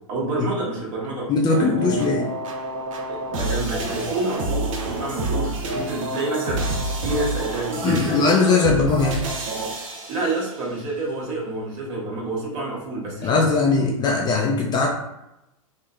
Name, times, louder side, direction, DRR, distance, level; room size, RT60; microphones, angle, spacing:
voice 1, 0.1-2.0 3.1-6.6 7.0-8.6 10.1-13.5, right 2 dB, 40° right, -4 dB, 1.1 m, -28 dB
voice 2, 1.3-2.3 7.8-9.2 13.2-14.9, left 4 dB, 25° left, 0 dB, 0.4 m, -20 dB
sound 1, 1.5-10.7, right 2 dB, 65° right, 0.6 m, -28 dB
3.1 x 2.1 x 2.4 m, 0.88 s
hypercardioid pair, 110°, 18 cm